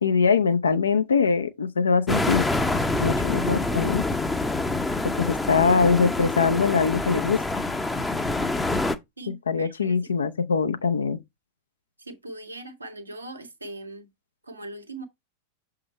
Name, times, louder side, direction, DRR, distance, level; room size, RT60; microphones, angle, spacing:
voice 1, 0.0-2.5 3.0-4.0 5.2-7.4 9.3-11.2, left 5 dB, 70° left, 0.6 m, -22 dB
sound 1, 2.1-9.0, left 2 dB, 10° left, 0.6 m, -26 dB
voice 2, 9.2-10.0 12.0-14.1 14.4-15.0, right 2 dB, 85° right, 1.2 m, -40 dB
6.9 x 3.8 x 4.2 m
figure-of-eight pair, 90°, 0 cm